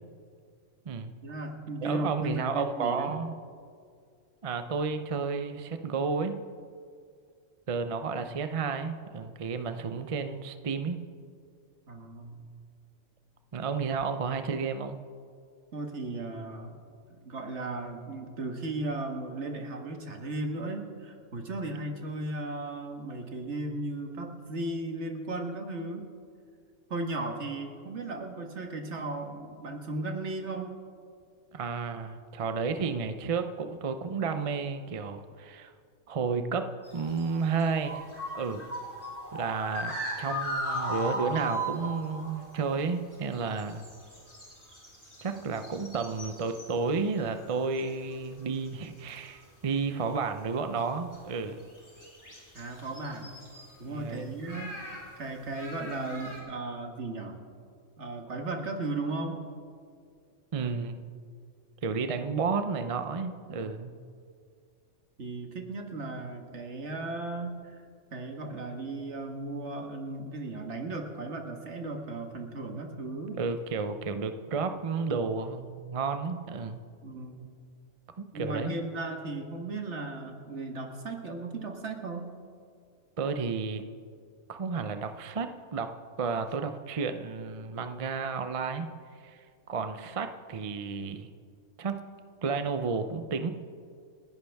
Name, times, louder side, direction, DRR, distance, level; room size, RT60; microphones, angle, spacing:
voice 1, 1.2-3.1 11.9-12.5 15.7-16.8 17.1-26.1 26.9-30.7 52.5-53.4 53.8-57.4 58.0-59.4 63.5-63.8 65.2-67.8 68.1-73.4 77.0-77.5 78.3-82.3, right 2 dB, 60° right, 4 dB, 1.8 m, -36 dB
voice 2, 1.8-3.3 4.4-6.4 7.7-11.0 13.5-15.0 31.5-35.7 36.1-38.0 38.3-38.7 39.3-43.8 45.2-51.7 53.9-54.3 60.5-61.1 61.8-64.0 73.3-76.8 78.2-78.8 83.2-83.8 84.5-85.9 86.2-88.9 89.2-89.4 89.7-91.3 91.8-92.0 92.4-93.5, right 5 dB, 40° right, 8 dB, 0.5 m, -32 dB
sound 1, 36.8-42.5 42.8-42.9 43.1-47.0 47.3-48.2 48.7-49.3 49.7-49.8 50.8-50.9 51.1-51.2 51.6-53.7 54.5-56.4, right 1 dB, 15° left, 4.6 m, -38 dB
29.0 x 10.5 x 3.5 m, 2.2 s
omnidirectional pair, 1.3 m